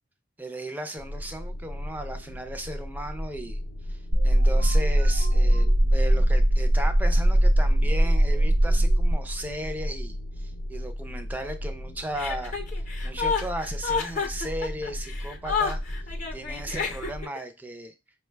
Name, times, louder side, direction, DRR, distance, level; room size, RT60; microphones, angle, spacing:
voice 1, 0.4-3.6 3.9-15.8 16.3-17.9, right 1 dB, 10° right, 6 dB, 0.4 m, -36 dB
sound 1, 1.0-17.2, equal, 80° left, 0.6 m, -36 dB
sound 2, 4.1-9.1, right 1 dB, 55° right, 0.6 m, -20 dB
Chuckle chortle, 12.1-17.4, left 5 dB, 40° left, 0.7 m, -30 dB
5.2 x 2.2 x 3.3 m, 0.27 s
head